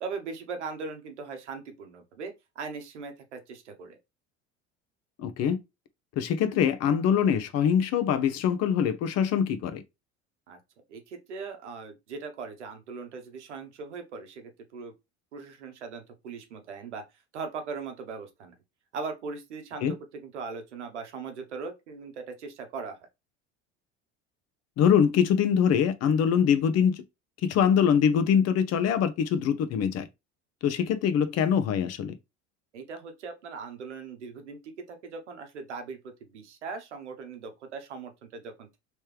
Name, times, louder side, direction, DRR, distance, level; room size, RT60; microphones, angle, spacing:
voice 1, 0.0-4.0 10.5-10.6 10.9-14.9 15.3-17.0 17.3-18.5 18.9-23.0 32.7-38.8, right 4 dB, 85° right, 0.9 m, -39 dB
voice 2, 5.2-5.6 6.2-9.8 19.8-19.9 24.8-27.0 27.4-30.1 30.6-32.1, left 8 dB, 50° left, 0.7 m, -23 dB
3.2 x 3.1 x 3.2 m
hypercardioid pair, 70°, 34 cm